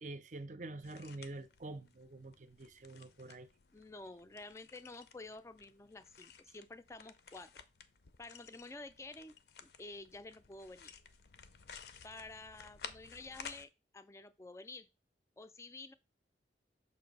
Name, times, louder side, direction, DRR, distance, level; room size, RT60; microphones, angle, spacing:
voice 1, 0.0-3.5, right 2 dB, 45° right, 0.5 m, -47 dB
sound 1, 0.8-13.7, left 6 dB, 65° left, 0.5 m, -55 dB
voice 2, 3.7-7.6 8.2-9.3 9.6-10.9 12.0-14.9 15.4-15.9, left 2 dB, 15° left, 0.3 m, -50 dB
6.7 x 2.7 x 5.2 m
head